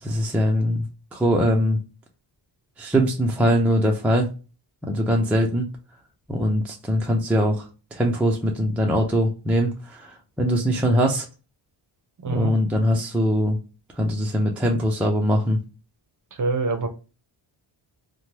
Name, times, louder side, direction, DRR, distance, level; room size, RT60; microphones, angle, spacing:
voice 1, 0.0-0.8 1.1-1.8 2.8-4.3 4.9-5.7 6.3-7.6 7.9-11.2 12.3-13.6 14.0-15.6, equal, 5° right, 0 dB, 0.4 m, -22 dB
voice 2, 12.2-12.5 16.4-16.9, right 3 dB, 40° right, 6 dB, 0.7 m, -24 dB
3.2 x 2.2 x 2.7 m, 0.32 s
wide cardioid pair, 145°, 50 cm